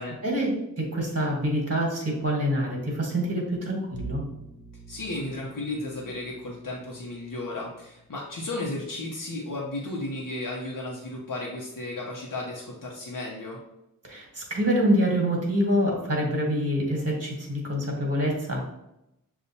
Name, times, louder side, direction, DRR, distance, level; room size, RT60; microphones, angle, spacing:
voice 1, 0.2-4.2 14.0-18.6, equal, 45° right, -1 dB, 1.4 m, -26 dB
Bowed string instrument, 3.9-9.0, right 5 dB, 40° left, 0.8 m, -45 dB
voice 2, 4.9-13.6, left 2 dB, 75° left, -3 dB, 0.8 m, -34 dB
6.8 x 2.4 x 2.7 m, 0.85 s
wide cardioid pair, 50°, 33 cm